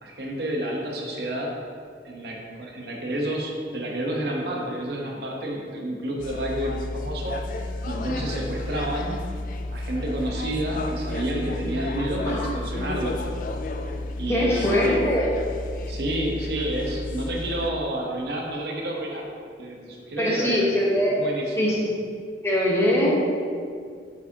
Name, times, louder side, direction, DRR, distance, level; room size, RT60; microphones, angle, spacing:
voice 1, 0.0-1.5 2.0-9.3 9.7-13.2 14.1-14.9 15.9-19.3 19.6-20.7 21.0-21.7, right 1 dB, 60° right, -1 dB, 0.9 m, -30 dB
sound 1, 6.2-17.7, left 2 dB, 45° left, 0.3 m, -32 dB
voice 2, 14.3-15.3 20.2-21.2 21.6-21.9 22.4-23.2, equal, 15° left, -5 dB, 1.0 m, -22 dB
8.1 x 4.9 x 2.8 m, 2.1 s
head